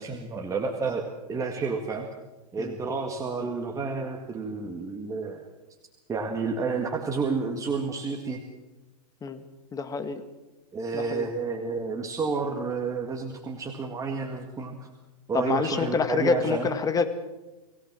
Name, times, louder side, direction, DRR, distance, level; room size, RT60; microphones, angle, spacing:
voice 1, 0.0-2.1 2.5-5.4 6.1-8.4 10.7-14.9 15.3-16.7, right 4 dB, 15° right, 3 dB, 2.0 m, -30 dB
voice 2, 9.7-10.2 10.9-11.3 15.3-17.1, left 5 dB, 15° left, 9 dB, 1.9 m, -27 dB
25.0 x 17.0 x 6.2 m, 1.1 s
hypercardioid pair, 125°, 20 cm